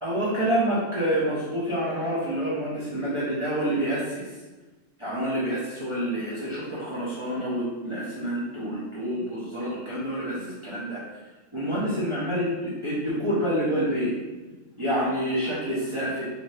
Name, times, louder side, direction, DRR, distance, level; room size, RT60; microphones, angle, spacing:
voice 1, 0.0-4.3 5.0-11.0 11.5-14.1 14.8-16.3, equal, 30° right, -10 dB, 0.6 m, -27 dB
2.6 x 2.6 x 3.2 m, 1.2 s
omnidirectional pair, 1.3 m